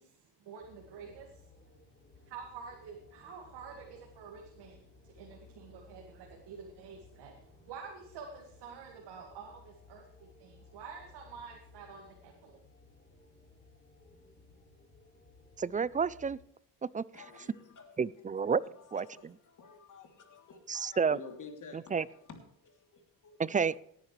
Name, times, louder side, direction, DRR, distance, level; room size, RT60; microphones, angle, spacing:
voice 1, 0.0-1.5 2.2-12.6, right 5 dB, 80° right, 1 dB, 2.2 m, -48 dB
sound 1, 0.6-16.4, left 3 dB, 25° left, 3.9 m, -59 dB
voice 2, 15.6-16.4 16.8-17.0 18.0-18.6 18.9-19.1 20.7-21.2 21.9-22.0 23.4-23.8, right 6 dB, 20° right, 21 dB, 0.4 m, -30 dB
voice 3, 17.1-23.4, left 5 dB, 50° left, 4 dB, 3.1 m, -52 dB
18.0 x 10.0 x 3.3 m, 0.70 s
cardioid pair, 85°, 40 cm